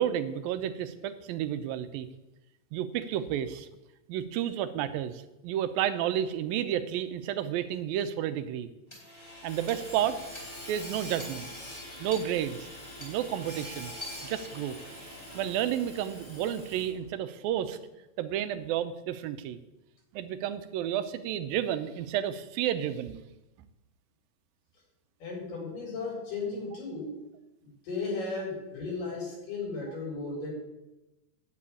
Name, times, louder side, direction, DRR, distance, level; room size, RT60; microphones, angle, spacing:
voice 1, 0.0-2.1 2.7-3.7 4.1-8.7 9.4-10.2 10.7-11.5 12.0-12.7 13.0-13.9 14.2-15.1 15.4-17.8 18.2-19.6 20.1-23.2, right 10 dB, 90° right, 11 dB, 2.6 m, -31 dB
Hammer / Sawing, 8.9-17.1, left 1 dB, 15° left, 3.7 m, -43 dB
voice 2, 25.2-27.2 27.6-30.5, left 3 dB, 70° left, -1 dB, 5.9 m, -35 dB
11.0 x 7.3 x 8.6 m, 0.97 s
omnidirectional pair, 4.0 m